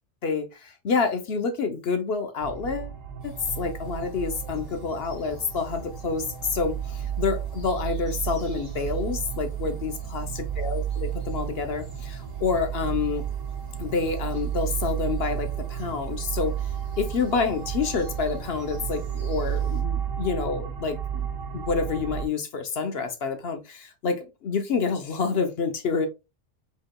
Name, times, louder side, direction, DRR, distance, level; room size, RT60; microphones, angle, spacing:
voice 1, 0.2-2.9 3.2-13.2 13.8-16.7 17.0-21.3 21.5-26.1, left 5 dB, 55° left, 0.9 m, -28 dB
sound 1, 2.4-22.3, right 9 dB, 80° right, 1.1 m, -32 dB
sound 2, 3.2-19.8, right 1 dB, 30° left, 2.0 m, -49 dB
5.1 x 3.8 x 2.2 m
omnidirectional pair, 1.3 m